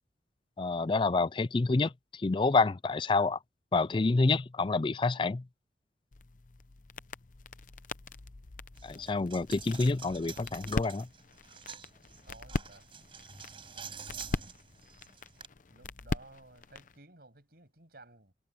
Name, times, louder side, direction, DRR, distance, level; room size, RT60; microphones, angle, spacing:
voice 1, 0.6-3.4 3.7-5.4 8.8-11.1, left 3 dB, 25° left, 0.4 m, -28 dB
sound 1, 6.1-17.0, left 3 dB, 45° left, 0.7 m, -41 dB
Coin (dropping), 8.8-15.5, right 6 dB, 30° right, 5.3 m, -48 dB
voice 2, 12.3-12.9 13.9-14.5 15.7-18.3, right 2 dB, 55° right, 7.4 m, -56 dB
head